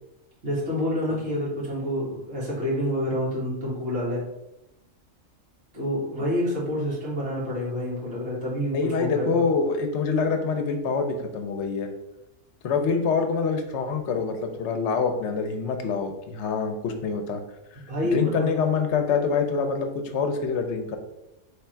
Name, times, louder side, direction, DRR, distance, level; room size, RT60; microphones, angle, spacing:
voice 1, 0.4-4.2 5.7-9.4 17.9-18.5, left 1 dB, 55° right, -7 dB, 1.9 m, -28 dB
voice 2, 8.7-11.9 12.6-17.4 18.1-19.9 20.1-21.0, left 5 dB, 65° left, 6 dB, 0.9 m, -25 dB
3.5 x 3.3 x 4.4 m, 0.91 s
omnidirectional pair, 1.4 m